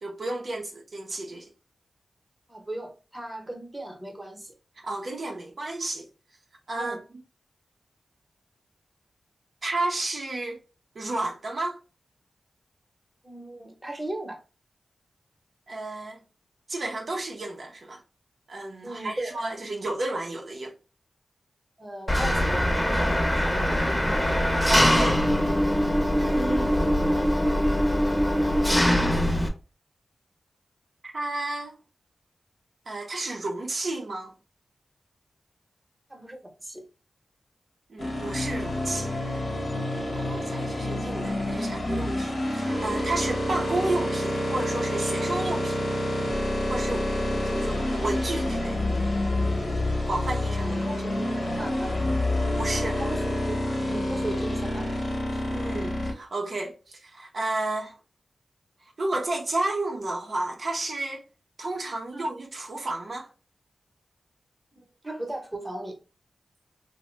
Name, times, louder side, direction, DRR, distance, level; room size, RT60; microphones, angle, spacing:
voice 1, 0.0-1.5 4.8-6.0 6.7-7.0 9.6-10.6 11.0-11.8 15.7-16.2 16.7-18.0 18.5-20.7 24.5-25.2 26.2-26.8 31.0-31.7 32.9-34.3 37.9-39.1 40.1-46.0 46.7-47.1 47.4-48.8 50.1-51.2 52.6-53.0 55.3-58.0 59.0-61.2 61.6-63.3, right 2 dB, 65° right, 0.6 m, -32 dB
voice 2, 2.5-4.5 6.8-7.0 13.2-14.4 18.8-19.4 21.8-24.3 36.1-36.8 41.6-41.7 50.6-52.0 52.7-53.6 53.8-55.0 62.1-62.3 64.8-66.0, right 1 dB, 20° right, 0.9 m, -37 dB
Engine, 22.1-29.5, equal, 15° left, 0.7 m, -22 dB
sound 1, 38.0-56.1, left 1 dB, 65° left, 0.9 m, -28 dB
2.8 x 2.1 x 3.2 m
cardioid pair, 65°, 0 cm